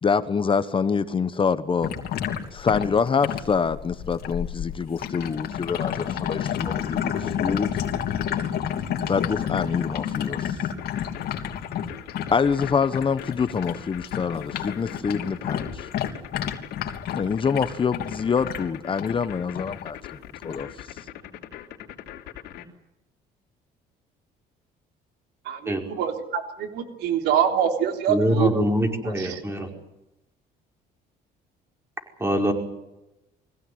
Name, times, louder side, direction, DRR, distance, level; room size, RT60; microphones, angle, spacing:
voice 1, 0.0-1.9 2.5-8.0 9.1-10.6 11.8-11.9 12.3-15.9 17.1-20.0 20.4-20.7, left 6 dB, 30° left, 1.1 m, -25 dB
sound 1, 1.8-13.8 14.0-19.2 19.5-19.9 20.5-20.6, left 9 dB, 65° left, 3.1 m, -30 dB
sound 2, 10.8-22.6, left 12 dB, 85° left, 3.3 m, -41 dB
voice 2, 25.5-28.5 29.0-29.4, right 9 dB, 80° right, 3.6 m, -25 dB
voice 3, 28.1-29.7 32.2-32.5, equal, 15° right, 5.1 m, -23 dB
24.0 x 16.5 x 9.6 m
cardioid pair, 110°, 17 cm